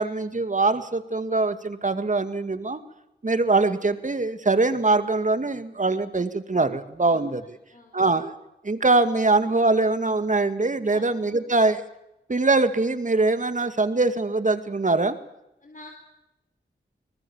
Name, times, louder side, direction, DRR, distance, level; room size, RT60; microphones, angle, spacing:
voice 1, 0.0-2.8 3.2-7.6 7.9-8.3 8.6-11.8 12.3-15.2, right 3 dB, 40° right, 10 dB, 2.1 m, -23 dB
voice 2, 7.0-7.4 7.7-8.0 10.9-11.0 15.6-15.9, left 2 dB, 45° left, 3 dB, 4.0 m, -46 dB
23.5 x 19.5 x 7.3 m, 0.88 s
cardioid pair, 45°, 19 cm